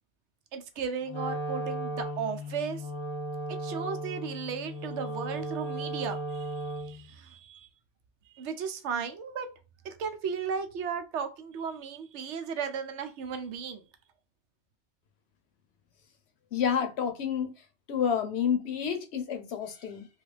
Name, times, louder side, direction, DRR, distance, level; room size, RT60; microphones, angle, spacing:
voice 1, 0.5-2.9 3.5-7.7 8.3-9.5 9.8-13.8, right 6 dB, 80° right, 0.9 m, -35 dB
Wind instrument woodwind instrument, 1.1-7.1, right 1 dB, 50° left, 0.3 m, -36 dB
voice 2, 16.5-17.5 17.9-20.1, left 7 dB, 70° left, 0.9 m, -29 dB
3.2 x 2.3 x 3.2 m
omnidirectional pair, 1.2 m